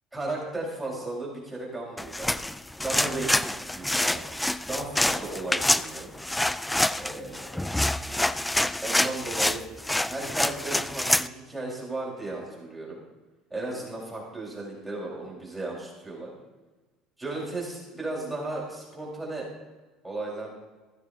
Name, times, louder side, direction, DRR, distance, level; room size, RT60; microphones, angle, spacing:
voice 1, 0.1-2.3 2.8-4.2 4.6-6.1 7.0-7.7 8.8-9.6 10.0-13.0 13.5-16.3 17.2-19.5 20.0-20.5, right 2 dB, 10° right, -4 dB, 4.5 m, -35 dB
sound 1, 2.0-11.3, left 1 dB, 5° left, 0.3 m, -27 dB
15.0 x 12.0 x 2.8 m, 1.2 s
supercardioid pair, 115°, 0 cm